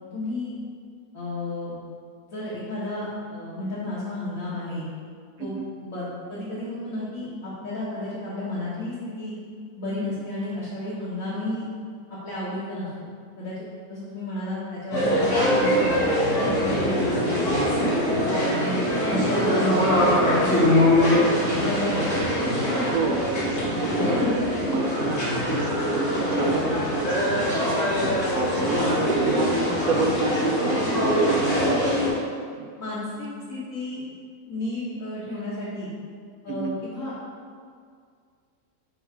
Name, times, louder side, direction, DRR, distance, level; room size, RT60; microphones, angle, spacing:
voice 1, 0.1-0.5 1.1-1.8 2.3-4.9 5.4-5.6 5.8-9.4 9.8-11.7 12.1-12.9 13.4-13.5 13.9-17.6 18.5-21.0 21.6-22.3 24.0-24.4 28.7-28.8 29.3-29.5 30.7-31.7 32.8-34.0 34.5-35.9 36.4-37.1, left 1 dB, 60° left, -10 dB, 1.7 m, -32 dB
sound 1, 14.9-32.1, equal, 85° left, 2.4 m, -23 dB
voice 2, 22.3-31.9 32.6-32.7 36.5-36.7, right 4 dB, 75° right, 2 dB, 1.0 m, -30 dB
5.5 x 4.7 x 4.5 m, 2.1 s
omnidirectional pair, 1.6 m